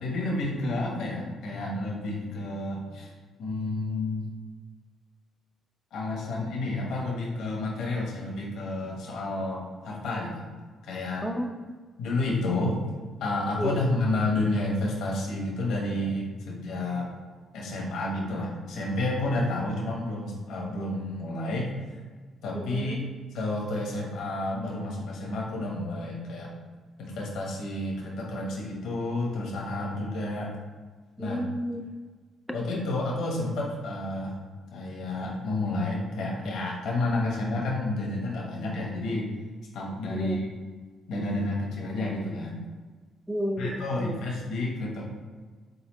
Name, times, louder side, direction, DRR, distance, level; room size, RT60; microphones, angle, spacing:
voice 1, 0.0-3.1 3.4-4.2 5.9-10.5 10.8-11.3 12.0-12.8 13.2-17.1 17.5-22.0 22.4-23.0 23.3-26.5 27.0-30.5 31.2-31.4 32.5-34.4 34.7-39.3 39.7-40.5 41.1-42.6 43.6-45.1, left 2 dB, 80° left, -2 dB, 1.0 m, -30 dB
voice 2, 11.2-11.8 13.6-13.8 22.5-23.0 31.2-31.8 40.1-40.4 43.3-44.2, equal, ahead, 5 dB, 0.4 m, -32 dB
3.9 x 3.8 x 3.0 m, 1.4 s
cardioid pair, 90°, 0 cm